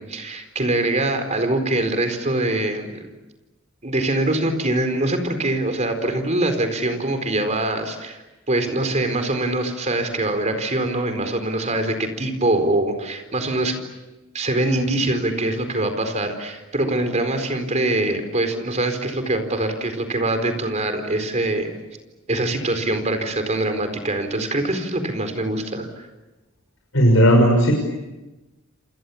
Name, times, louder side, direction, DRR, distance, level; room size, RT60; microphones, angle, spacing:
voice 1, 0.1-3.0 3.8-8.2 8.5-13.8 14.3-21.8 22.3-25.9, right 2 dB, 35° right, 7 dB, 4.4 m, -23 dB
voice 2, 26.9-27.7, equal, 75° left, 1 dB, 6.2 m, -14 dB
29.0 x 28.5 x 7.2 m, 1.1 s
head